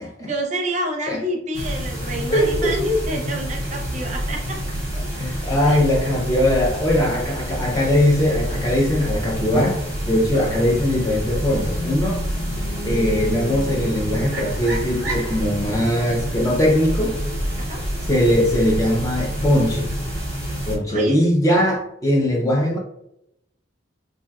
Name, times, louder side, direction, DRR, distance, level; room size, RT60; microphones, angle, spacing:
voice 1, 0.3-4.6 5.6-5.8 10.3-10.5 17.6-17.8 20.9-21.2, equal, 35° right, 2 dB, 0.5 m, -28 dB
sound 1, 1.5-20.8, equal, 10° right, 0.8 m, -27 dB
voice 2, 2.3-2.8 5.1-9.8 10.1-12.2 12.9-17.2 18.0-19.9 20.7-22.8, left 1 dB, 15° left, -1 dB, 0.4 m, -20 dB
sound 2, 11.4-15.5, equal, 65° left, 1.0 m, -34 dB
2.5 x 2.1 x 3.4 m, 0.81 s
head